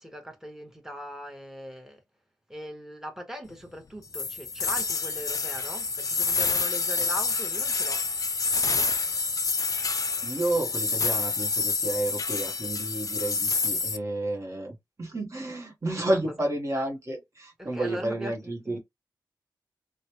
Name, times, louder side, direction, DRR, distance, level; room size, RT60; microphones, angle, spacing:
voice 1, 0.0-2.0 2.5-8.0 16.1-16.4 17.6-18.8, equal, 5° right, 1.1 m, -40 dB
sound 1, 4.1-14.0, left 4 dB, 45° left, 0.4 m, -28 dB
voice 2, 10.2-18.8, right 1 dB, 40° right, 1.0 m, -31 dB
3.0 x 2.1 x 2.9 m
cardioid pair, 45°, 8 cm